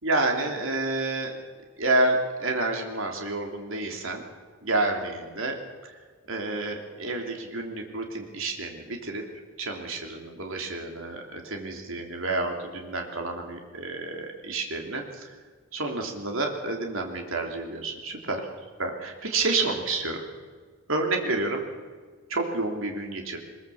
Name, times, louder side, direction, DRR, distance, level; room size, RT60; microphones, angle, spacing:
voice 1, 0.0-1.3 1.8-4.2 4.6-5.6 5.8-5.9 6.3-9.2 9.6-15.3 15.7-18.5 18.8-20.2 20.9-21.6 22.3-23.4, right 2 dB, 65° right, 3 dB, 3.0 m, -29 dB
21.5 x 21.5 x 7.1 m, 1.5 s
head